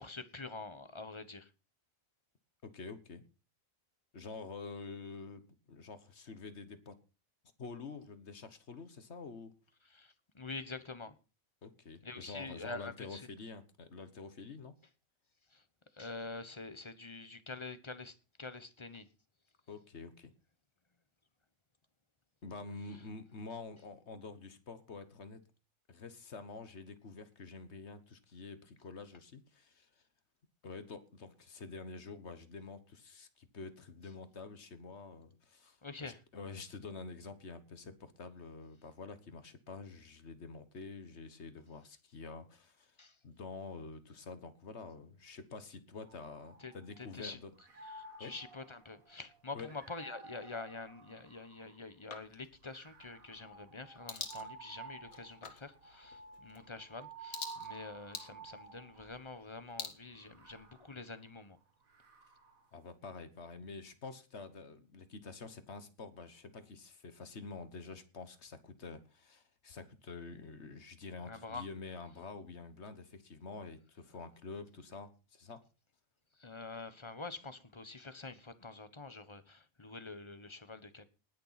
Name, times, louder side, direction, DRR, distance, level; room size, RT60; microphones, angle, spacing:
voice 1, 0.0-1.5 9.8-11.1 12.0-13.3 15.5-15.6 15.9-19.1 35.8-36.2 43.0-43.2 46.6-47.4 47.9-61.6 71.2-71.6 76.4-81.1, left 3 dB, 25° left, 1.1 m, -46 dB
voice 2, 2.6-3.2 4.1-7.0 7.6-9.5 11.6-14.7 19.7-20.3 22.4-25.4 25.9-30.0 30.6-43.0 43.2-47.5 48.2-48.3 49.5-49.7 62.7-75.6, left 4 dB, 55° left, 1.5 m, -48 dB
sound 1, 46.0-47.2 47.6-51.9 52.6-59.3 60.1-62.7, right 4 dB, 85° right, 2.4 m, -53 dB
sound 2, 52.1-60.9, left 5 dB, 85° left, 2.2 m, -49 dB
19.5 x 6.8 x 5.8 m
omnidirectional pair, 1.4 m